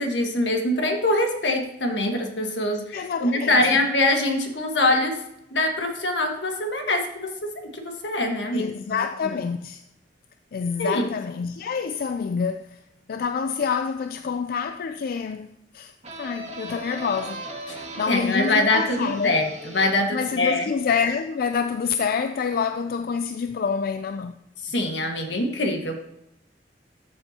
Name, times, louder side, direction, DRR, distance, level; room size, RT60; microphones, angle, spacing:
voice 1, 0.0-5.1 5.5-7.3 7.7-8.7 9.2-9.4 10.8-11.1 17.7-17.8 18.1-20.6 24.6-26.0, left 2 dB, 80° left, 1.5 m, -23 dB
voice 2, 2.9-3.8 8.5-9.8 10.5-12.8 13.1-15.5 15.7-15.9 16.2-19.4 20.1-24.3, left 6 dB, 55° left, 0.4 m, -27 dB
sound 1, 16.0-21.5, right 1 dB, 40° right, 1.8 m, -38 dB
13.0 x 6.9 x 2.8 m
head